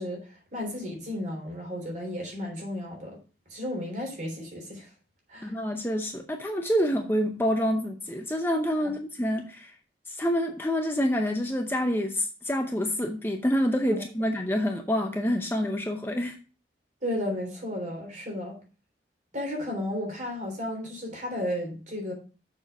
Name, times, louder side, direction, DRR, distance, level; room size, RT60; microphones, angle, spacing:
voice 1, 0.0-3.2 3.5-4.9 5.3-5.5 8.8-8.9 13.9-14.0 17.0-18.6 19.3-22.1, left 1 dB, 40° right, 3.4 m, -33 dB
voice 2, 5.4-9.7 10.1-16.4, equal, 10° left, 0.7 m, -27 dB
7.1 x 6.7 x 4.7 m
head